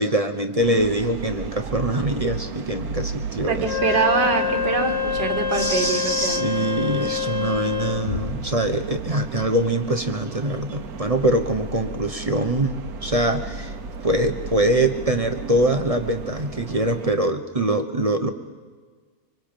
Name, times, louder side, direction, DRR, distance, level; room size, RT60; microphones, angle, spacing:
voice 1, 0.0-3.8 5.5-13.7 14.0-18.3, right 1 dB, 25° right, 7 dB, 1.0 m, -23 dB
sound 1, 0.6-17.1, right 5 dB, 65° right, 1.5 m, -34 dB
voice 2, 3.5-6.5, right 5 dB, 80° right, 7 dB, 2.3 m, -24 dB
Wind instrument woodwind instrument, 3.6-8.1, left 8 dB, 15° left, 0.6 m, -26 dB
Bass drum, 8.1-9.5, left 6 dB, 50° left, 1.3 m, -35 dB
25.5 x 25.5 x 5.3 m, 1.5 s
omnidirectional pair, 1.8 m